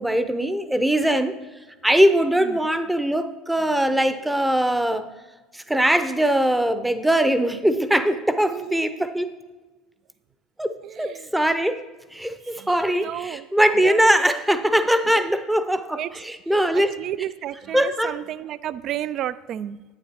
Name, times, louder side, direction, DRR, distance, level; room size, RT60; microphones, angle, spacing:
voice 1, 0.0-1.4 1.8-5.1 5.5-9.3 10.6-11.8 12.1-16.9 17.7-18.2, right 1 dB, 5° right, 11 dB, 0.6 m, -21 dB
voice 2, 10.8-11.3 12.5-13.4 13.8-14.2 15.2-15.3 16.0-16.1 16.7-19.8, right 11 dB, 50° right, 16 dB, 0.3 m, -32 dB
10.5 x 8.9 x 2.9 m, 1.2 s
hypercardioid pair, 70°, 0 cm